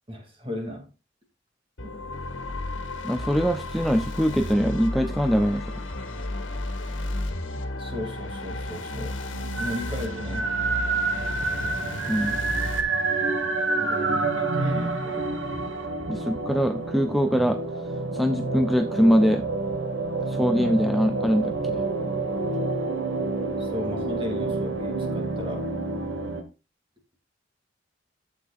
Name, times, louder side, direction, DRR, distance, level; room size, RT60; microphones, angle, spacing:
voice 1, 0.1-0.9 7.8-9.2 9.6-10.6 13.8-15.3 23.6-25.7, left 1 dB, 30° right, 2.5 m, -35 dB
sound 1, 1.8-12.8, left 2 dB, 75° left, 1.6 m, -33 dB
voice 2, 3.0-5.8 12.1-12.4 16.1-17.6 18.1-19.4 20.3-21.8, equal, ahead, 0.5 m, -23 dB
sound 2, 9.3-26.4, right 3 dB, 75° right, 1.5 m, -28 dB
12.0 x 7.8 x 2.4 m
head